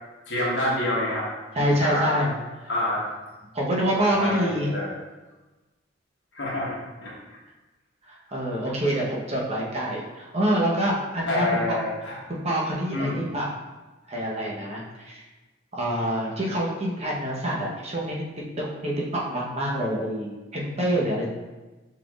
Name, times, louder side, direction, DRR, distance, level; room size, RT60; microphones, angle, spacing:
voice 1, 0.3-1.3 1.5-2.2 2.7-3.1 4.0-4.9 6.3-6.7 7.0-7.1 11.3-12.2 12.9-13.3, left 1 dB, 65° left, -5 dB, 1.1 m, -27 dB
voice 2, 1.5-2.3 3.5-4.7 8.1-11.8 12.3-13.5 14.1-15.2 15.7-18.2 18.6-21.3, right 1 dB, 35° right, -3 dB, 0.9 m, -26 dB
5.7 x 3.8 x 2.4 m, 1.2 s
head